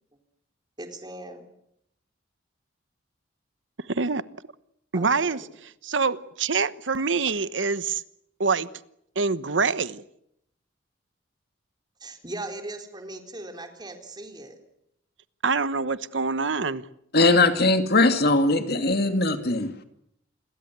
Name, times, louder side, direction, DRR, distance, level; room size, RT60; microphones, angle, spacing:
voice 1, 0.8-1.5 4.9-5.5 12.0-14.6, right 2 dB, 25° right, 4.0 m, -39 dB
voice 2, 3.9-4.2 4.9-5.4 5.8-8.0 8.4-8.7 9.1-10.0 15.4-16.9, right 4 dB, 75° right, 1.1 m, -25 dB
voice 3, 17.1-19.8, left 2 dB, 55° left, 2.5 m, -20 dB
28.0 x 22.0 x 8.1 m
head